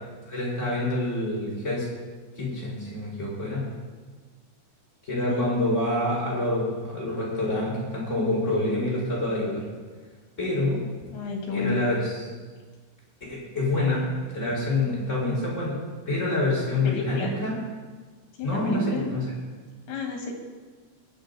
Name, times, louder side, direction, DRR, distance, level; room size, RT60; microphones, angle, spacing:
voice 1, 0.3-1.9 2.3-3.7 5.0-9.6 10.4-10.8 11.5-12.1 13.3-17.5 18.4-19.2, left 2 dB, 15° left, -6 dB, 4.9 m, -27 dB
voice 2, 11.1-11.8 16.8-17.4 18.3-19.1 19.9-20.3, left 4 dB, 65° left, 1 dB, 3.9 m, -31 dB
21.5 x 8.3 x 4.1 m, 1.4 s
omnidirectional pair, 5.1 m